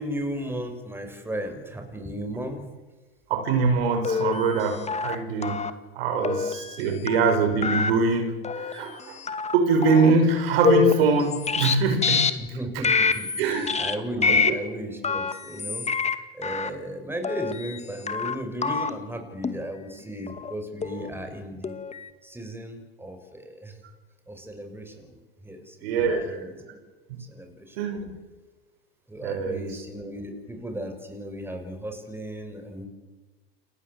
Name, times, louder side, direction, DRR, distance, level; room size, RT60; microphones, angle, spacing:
voice 1, 0.0-2.7 6.9-7.0 12.4-15.9 16.3-21.8 22.2-23.8 24.3-25.2 25.4-26.6 27.3-27.8 29.1-32.9, equal, 5° right, 6 dB, 6.1 m, -35 dB
voice 2, 3.3-5.7 6.0-9.2 9.5-12.3 13.4-13.7 14.3-14.4 25.8-26.4 27.8-28.0 29.2-29.6, right 4 dB, 70° right, 6 dB, 5.6 m, -23 dB
sound 1, 4.0-4.6 4.9-5.2 5.4-5.7 6.2-6.8 7.1-7.4 7.6-7.9 8.4-8.7 9.2-9.6 9.8-10.1 10.6-11.7 12.0-12.3 12.8-13.4 13.7-13.9 14.2-14.5 15.0-16.1 16.4-16.7 17.2-17.8 18.1-18.3 18.6-18.9 19.4-19.5 20.3-20.5 20.8-21.1 21.6-22.1, left 5 dB, 20° left, 2.2 m, -25 dB
29.5 x 21.0 x 8.1 m, 1.3 s
hypercardioid pair, 90°, 31 cm